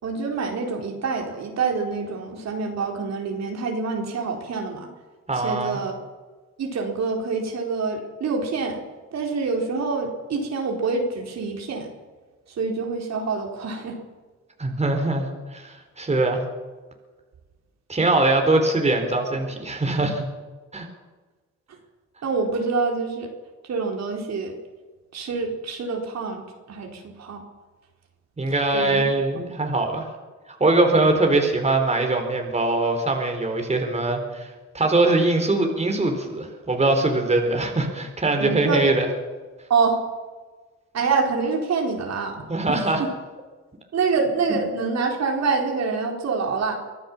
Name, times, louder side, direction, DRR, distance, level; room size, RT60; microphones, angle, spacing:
voice 1, 0.0-4.9 5.3-5.9 6.6-8.8 9.1-11.9 12.6-14.0 22.2-23.3 23.6-24.6 25.1-26.4 26.7-27.4 28.7-29.0 29.4-29.5 38.4-38.9 39.7-40.0 40.9-43.1 43.9-46.8, right 4 dB, 60° right, 1 dB, 4.3 m, -26 dB
voice 2, 5.3-5.8 14.6-16.4 17.9-20.3 20.7-20.9 28.4-30.1 30.5-39.1 42.5-43.0, right 2 dB, 20° right, 3 dB, 4.3 m, -22 dB
24.5 x 14.5 x 7.4 m, 1.3 s
cardioid pair, 90°, 30 cm